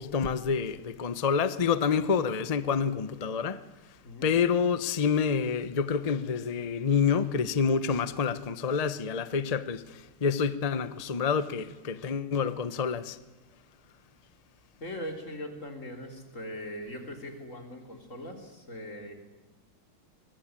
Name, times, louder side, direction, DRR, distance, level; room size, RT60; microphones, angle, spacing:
voice 1, 0.0-3.6 4.2-13.2, left 6 dB, 70° left, 0.3 m, -28 dB
voice 2, 14.8-19.1, equal, 35° left, 3.7 m, -40 dB
23.5 x 21.5 x 8.9 m
omnidirectional pair, 2.4 m